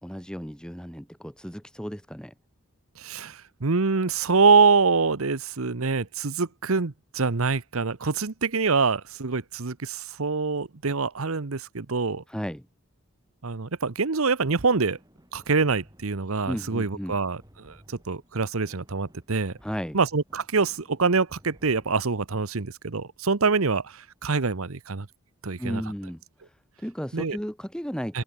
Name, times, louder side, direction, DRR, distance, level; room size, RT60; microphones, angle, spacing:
voice 1, 0.0-2.3 12.3-12.7 16.5-17.2 19.6-20.0 25.6-28.2, equal, 5° left, 1.4 m, -34 dB
voice 2, 3.0-12.2 13.4-15.0 15.3-19.5 19.9-25.1 25.4-25.8 27.1-27.4 28.1-28.2, right 4 dB, 75° right, 1.0 m, -25 dB
sound 1, 14.4-22.2, equal, 15° right, 5.3 m, -56 dB
open air
head